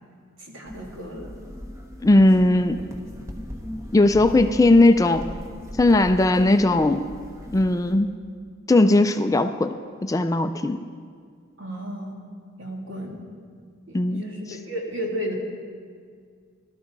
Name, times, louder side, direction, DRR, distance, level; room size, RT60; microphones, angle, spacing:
voice 1, 0.4-1.4 11.6-12.1 12.6-13.2 13.9-15.3, equal, 70° right, -1 dB, 2.5 m, -33 dB
sound 1, 0.6-7.9, equal, 15° right, 1.3 m, -38 dB
voice 2, 2.0-2.8 3.9-5.3 5.8-7.1 7.5-8.1 8.7-9.7 10.0-10.8 13.9-14.2, left 2 dB, 15° left, 8 dB, 0.3 m, -18 dB
18.5 x 12.5 x 3.9 m, 2.1 s
head